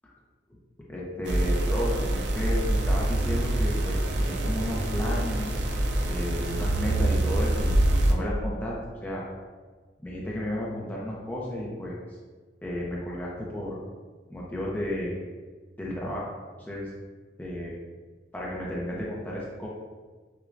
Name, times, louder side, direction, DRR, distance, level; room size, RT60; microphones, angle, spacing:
voice 1, 0.9-5.5 6.1-7.7 8.1-9.2 10.0-12.0 12.6-13.8 14.3-15.1 15.8-16.3 16.6-16.9 17.4-17.8 18.3-19.7, left 1 dB, 10° left, -5 dB, 0.5 m, -33 dB
sound 1, 1.3-8.1, right 1 dB, 75° right, 0.5 m, -25 dB
6.0 x 2.2 x 2.5 m, 1.4 s
head